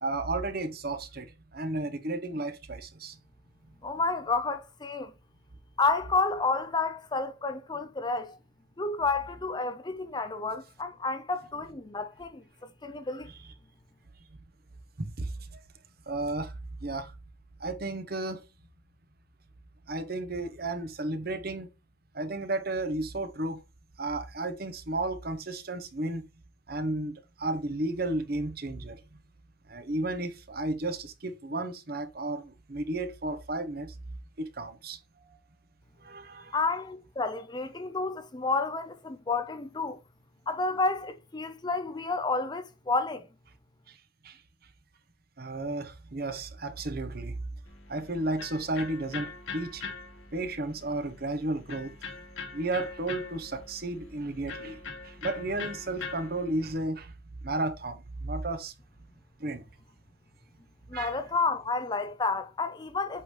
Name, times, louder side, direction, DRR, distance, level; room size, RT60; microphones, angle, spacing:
voice 1, 0.0-3.2 15.0-15.3 16.1-16.5 16.8-17.1 17.6-18.4 19.9-21.7 22.1-23.6 24.0-26.2 26.7-29.0 29.7-33.9 34.4-35.4 36.0-36.6 44.2-44.4 45.4-47.3 47.9-49.8 50.3-51.9 52.5-54.8 55.0-57.1 57.4-58.7 59.4-59.6 60.9-61.2, right 2 dB, 50° right, 1.0 m, -33 dB
voice 2, 3.8-5.1 5.8-8.4 8.8-12.4 12.8-13.3 36.5-40.0 40.5-43.3 60.9-63.2, left 3 dB, 20° left, 0.5 m, -30 dB
Electric guitar, 47.6-56.7, left 4 dB, 80° left, 1.6 m, -42 dB
8.3 x 3.9 x 3.2 m
head